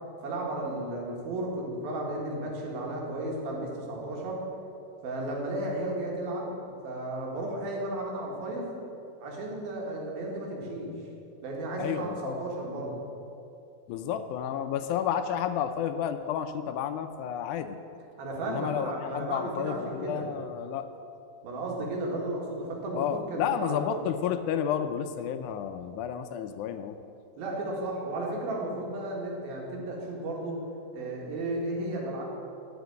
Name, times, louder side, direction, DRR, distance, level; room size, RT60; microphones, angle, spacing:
voice 1, 0.2-4.4 5.0-8.7 9.2-10.9 11.4-13.0 18.2-20.3 21.4-24.0 27.4-30.6 30.9-32.2, right 1 dB, 85° right, -2 dB, 3.8 m, -34 dB
voice 2, 11.8-12.4 13.9-17.8 18.5-20.9 22.9-27.0, left 9 dB, 80° left, 9 dB, 1.8 m, -31 dB
15.0 x 5.2 x 9.2 m, 2.7 s
omnidirectional pair, 4.1 m